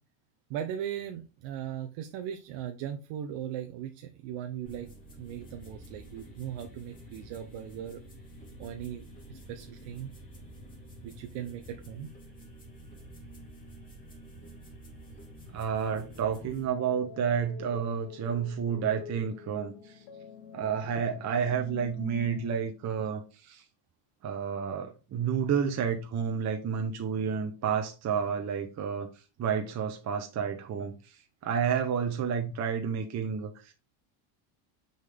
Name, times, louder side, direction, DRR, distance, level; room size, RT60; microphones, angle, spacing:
voice 1, 0.5-4.9 5.2-8.0 8.6-10.1 11.0-12.1, right 10 dB, 65° right, 0.9 m, -38 dB
sound 1, 4.6-16.7, right 1 dB, 15° left, 2.5 m, -49 dB
voice 2, 15.5-20.0 20.5-23.6 24.2-29.1 29.4-33.7, right 7 dB, 35° right, 0.9 m, -30 dB
Dreaming of a night, 15.8-22.6, left 6 dB, 75° left, 1.5 m, -46 dB
6.6 x 4.1 x 3.4 m
cardioid pair, 125°, 50 cm